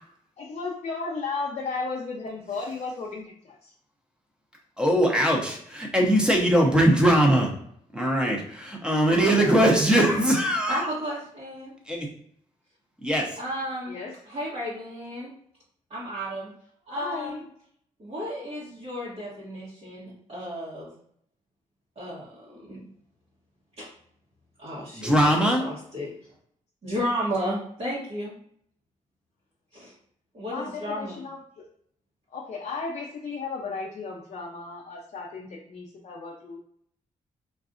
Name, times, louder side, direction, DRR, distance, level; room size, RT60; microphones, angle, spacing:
voice 1, 0.4-3.7 9.0-9.8 13.9-14.1 17.0-17.4 18.4-18.5 30.4-31.6 32.3-36.6, left 4 dB, 55° left, -3 dB, 0.6 m, -35 dB
voice 2, 4.8-7.5 7.9-10.9 11.9-12.1 13.0-13.4 24.9-25.6, right 1 dB, 5° right, 0 dB, 0.8 m, -21 dB
voice 3, 10.7-11.7 13.4-14.0 14.3-15.3 15.9-16.5 16.9-17.4 18.0-20.9 22.0-22.8 23.8-23.9 24.6-26.1 26.8-28.3 29.7-29.9 30.3-31.2, equal, 55° right, -9 dB, 1.1 m, -33 dB
3.9 x 2.4 x 2.5 m, 0.66 s
cardioid pair, 90°, 14 cm